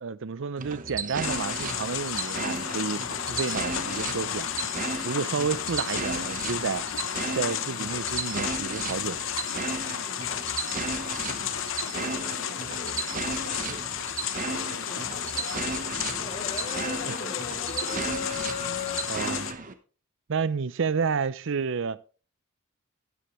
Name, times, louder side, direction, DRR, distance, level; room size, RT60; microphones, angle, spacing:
voice 1, 0.0-4.5 5.0-6.8 7.4-9.2 17.0-17.1 18.6-19.5 20.3-22.0, right 5 dB, 65° right, 0.6 m, -30 dB
sound 1, 0.6-19.7, right 4 dB, 40° right, 1.0 m, -35 dB
sound 2, 1.2-19.5, left 9 dB, 65° left, 0.8 m, -33 dB
voice 2, 11.3-13.0 13.3-13.8 14.4-16.6 16.9-18.3, left 1 dB, 50° left, 3.2 m, -44 dB
sound 3, 12.4-14.5 14.7-14.9 15.1-15.7 16.0-19.0, left 5 dB, 35° left, 1.1 m, -39 dB
12.0 x 10.0 x 3.1 m
head